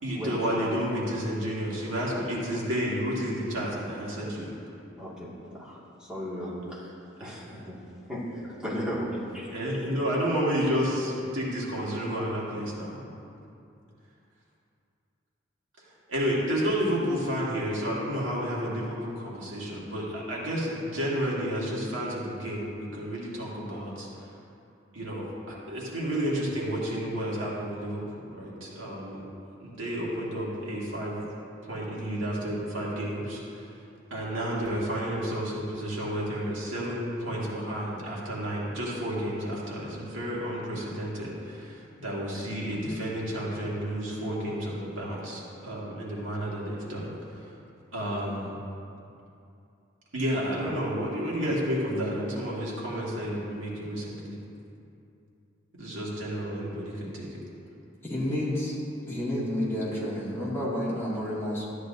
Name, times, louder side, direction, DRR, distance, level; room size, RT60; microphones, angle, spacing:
voice 1, 0.0-4.5 7.2-7.3 9.5-13.1 16.1-24.3 24.9-29.3 29.6-31.3 31.6-33.7 34.1-47.5 47.9-48.6 50.1-54.3 55.8-57.4, equal, 75° right, -5 dB, 2.2 m, -31 dB
voice 2, 5.0-6.9 7.2-7.8 8.1-8.2 8.5-9.8, equal, 5° right, -9 dB, 2.1 m, -36 dB
voice 3, 58.0-58.8 59.1-61.7, left 1 dB, 15° left, -8 dB, 2.2 m, -30 dB
13.0 x 9.6 x 2.7 m, 2.6 s
head